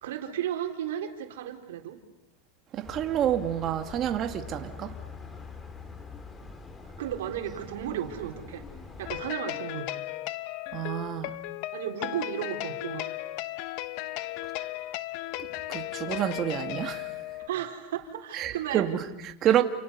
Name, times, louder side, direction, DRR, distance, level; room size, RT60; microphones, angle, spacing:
voice 1, 0.0-2.0 7.0-8.6 9.0-10.0 11.7-13.1 17.5-18.9 19.4-19.5, right 10 dB, 80° right, 3.9 m, -34 dB
voice 2, 2.7-4.9 10.7-11.4 15.4-17.1 18.3-19.6, right 11 dB, 35° right, 2.2 m, -28 dB
sound 1, 2.8-9.3, left 5 dB, 15° left, 2.4 m, -44 dB
sound 2, 9.0-17.5, left 17 dB, 50° left, 1.0 m, -36 dB
29.5 x 29.0 x 7.0 m
supercardioid pair, 145°, 0 cm